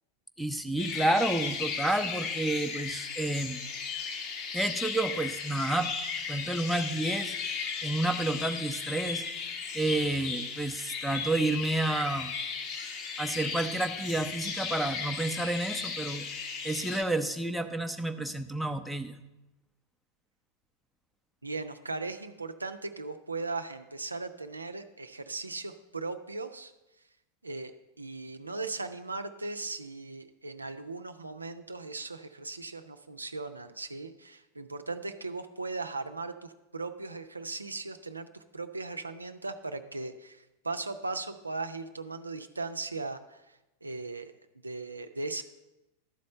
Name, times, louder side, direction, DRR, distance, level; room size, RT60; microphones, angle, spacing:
voice 1, 0.4-3.7 4.5-5.9 6.3-7.3 7.8-9.3 9.7-12.3 13.2-16.3 16.6-19.2, right 1 dB, ahead, 9 dB, 0.6 m, -30 dB
sound 1, 0.8-17.0, left 5 dB, 40° left, 1.0 m, -36 dB
voice 2, 21.4-26.7 27.4-44.3 44.6-45.4, right 3 dB, 80° right, 7 dB, 0.5 m, -38 dB
12.0 x 4.3 x 6.6 m, 1.0 s
figure-of-eight pair, 90°, 0 cm